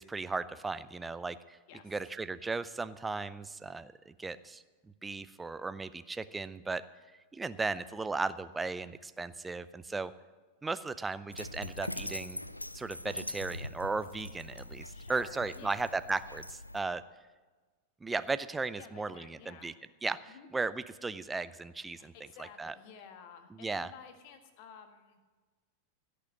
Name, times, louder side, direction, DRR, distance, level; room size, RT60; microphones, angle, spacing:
voice 1, 0.0-1.6 1.8-4.6 5.0-6.8 7.3-10.1 10.6-12.4 12.7-17.0 18.0-19.7 20.0-22.1 22.4-22.7 23.6-23.9, right 3 dB, 10° right, 14 dB, 0.6 m, -36 dB
Dog, 11.3-16.8, left 1 dB, 85° left, 0.4 m, -42 dB
voice 2, 14.9-15.9 18.8-19.7 20.3-20.5 21.9-25.2, left 7 dB, 45° left, 7 dB, 1.6 m, -52 dB
16.5 x 6.8 x 8.9 m, 1.3 s
figure-of-eight pair, 90°, 0 cm